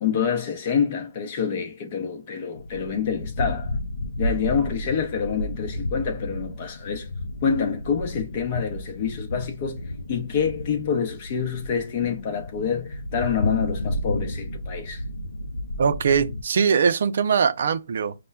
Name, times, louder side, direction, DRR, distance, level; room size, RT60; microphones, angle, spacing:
voice 1, 0.0-3.8 4.2-7.1 7.4-9.8 10.1-15.0, left 7 dB, 35° left, 0.7 m, -27 dB
sound 1, 2.6-16.4, left 1 dB, 80° left, 0.4 m, -32 dB
voice 2, 15.8-18.1, right 6 dB, 55° right, 0.4 m, -21 dB
5.3 x 2.2 x 2.3 m
hypercardioid pair, 160°, 0 cm